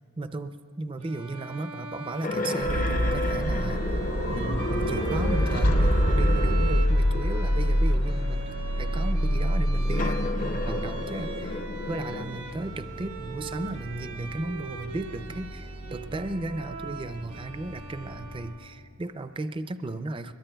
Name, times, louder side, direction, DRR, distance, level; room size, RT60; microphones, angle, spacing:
voice 1, 0.2-4.0 4.3-8.5 8.8-11.6 11.9-20.3, right 2 dB, 25° right, 10 dB, 0.4 m, -35 dB
Bowed string instrument, 1.0-18.8, right 4 dB, 80° right, 1.1 m, -40 dB
sound 1, 2.2-6.9 7.6-7.7 9.8-12.4, left 2 dB, 35° left, 0.5 m, -33 dB
sound 2, 2.6-18.5, equal, 75° left, 2.0 m, -27 dB
23.5 x 22.0 x 2.3 m, 2.4 s
head